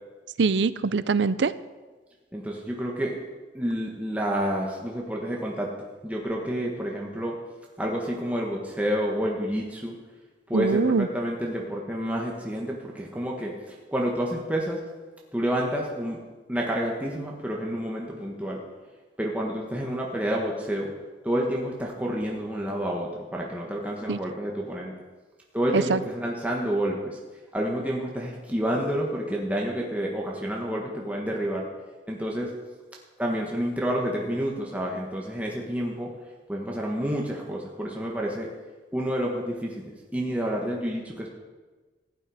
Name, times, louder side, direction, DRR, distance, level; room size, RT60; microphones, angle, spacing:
voice 1, 0.4-1.5 10.5-11.1 24.1-24.2 25.7-26.0, right 4 dB, 75° right, 16 dB, 0.5 m, -23 dB
voice 2, 2.3-3.1 3.5-5.7 6.0-7.3 7.8-9.9 10.5-14.8 15.3-16.2 16.5-18.6 19.2-20.9 21.2-24.9 25.5-27.2 27.5-31.7 32.1-32.5 33.2-36.1 36.5-38.5 38.9-41.3, equal, 10° right, -2 dB, 1.4 m, -29 dB
15.5 x 8.9 x 5.0 m, 1.3 s
head